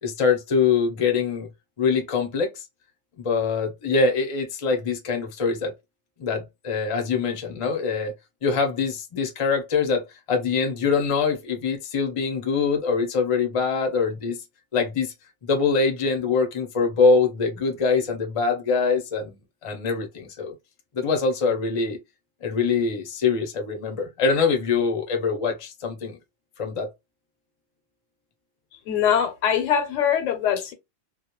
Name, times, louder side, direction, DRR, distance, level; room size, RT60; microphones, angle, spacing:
voice 1, 0.0-1.5 1.8-2.6 3.2-5.7 6.2-8.1 8.4-10.0 10.3-14.4 14.7-15.1 15.4-20.5 20.9-22.0 22.4-26.2 26.6-26.9, left 5 dB, 40° left, 0.5 m, -24 dB
voice 2, 28.9-30.7, left 8 dB, 75° left, 0.9 m, -22 dB
2.3 x 2.1 x 2.8 m
omnidirectional pair, 1.3 m